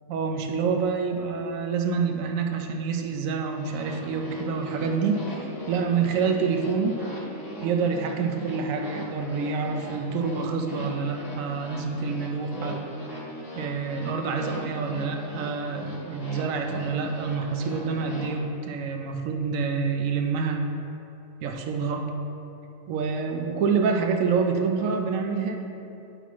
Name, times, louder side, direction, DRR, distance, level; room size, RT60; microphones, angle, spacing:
voice 1, 0.1-7.0 7.6-12.8 13.6-20.7 21.4-22.1 22.9-25.7, right 5 dB, 75° right, 4 dB, 1.0 m, -27 dB
sound 1, 3.5-18.3, left 1 dB, 30° left, 1.3 m, -39 dB
9.4 x 5.9 x 3.1 m, 2.7 s
omnidirectional pair, 1.5 m